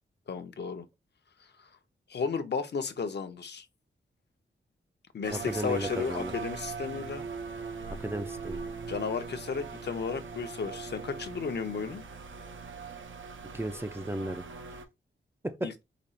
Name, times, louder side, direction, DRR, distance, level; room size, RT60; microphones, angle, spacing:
voice 1, 0.3-0.9 1.6-1.7 2.1-3.7 5.1-7.3 8.9-12.0 15.6-15.7, left 5 dB, 60° left, 0.7 m, -34 dB
sound 1, 5.2-14.8, right 5 dB, 75° right, 0.7 m, -41 dB
voice 2, 5.3-6.3 7.9-8.6 13.5-14.5 15.4-15.8, right 1 dB, 10° right, 0.4 m, -34 dB
5.1 x 2.4 x 4.2 m
wide cardioid pair, 150°, 20 cm